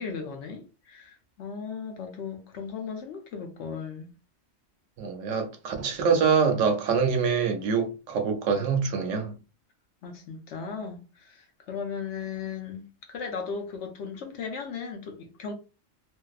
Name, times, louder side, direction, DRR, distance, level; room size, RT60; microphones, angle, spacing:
voice 1, 0.0-4.1 10.0-15.5, left 6 dB, 70° left, 0.9 m, -37 dB
voice 2, 5.0-9.3, right 6 dB, 75° right, 1.0 m, -25 dB
2.6 x 2.3 x 2.3 m
omnidirectional pair, 1.3 m